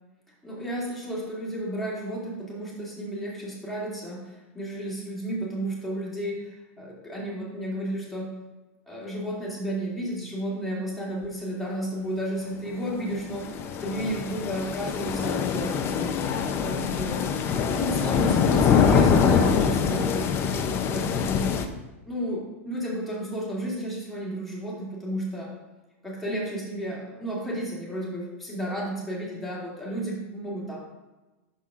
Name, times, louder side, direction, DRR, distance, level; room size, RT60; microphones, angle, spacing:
voice 1, 0.4-8.3 8.9-15.8 16.6-17.3 17.7-21.4 22.1-25.5 26.0-30.8, right 1 dB, ahead, -6 dB, 2.4 m, -32 dB
sound 1, 12.7-21.7, left 6 dB, 30° left, 0.6 m, -24 dB
6.4 x 5.5 x 3.6 m, 1.1 s
hypercardioid pair, 125°, 8 cm